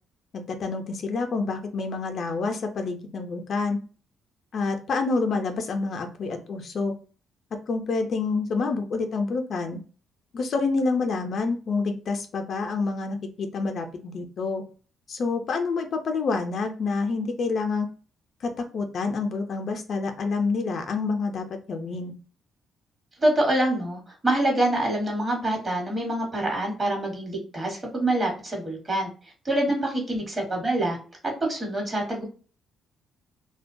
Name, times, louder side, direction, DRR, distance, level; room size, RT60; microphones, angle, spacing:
voice 1, 0.3-3.8 4.5-6.9 7.7-9.8 10.3-14.6 15.1-17.9 18.4-22.1, left 4 dB, 55° left, 5 dB, 0.4 m, -28 dB
voice 2, 23.2-29.1 29.4-31.0 31.2-32.2, right 1 dB, 30° right, 0 dB, 1.1 m, -25 dB
2.2 x 2.1 x 2.5 m, 0.38 s
cardioid pair, 90°, 0 cm